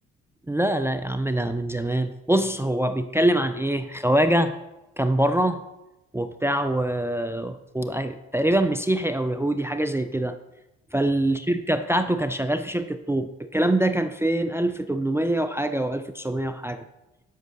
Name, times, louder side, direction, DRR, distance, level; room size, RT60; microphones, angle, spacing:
voice 1, 0.5-4.6 5.0-5.6 6.1-10.4 10.9-16.8, right 1 dB, 10° right, 10 dB, 0.5 m, -24 dB
8.0 x 6.3 x 6.2 m, 0.98 s
cardioid pair, 90°, 30 cm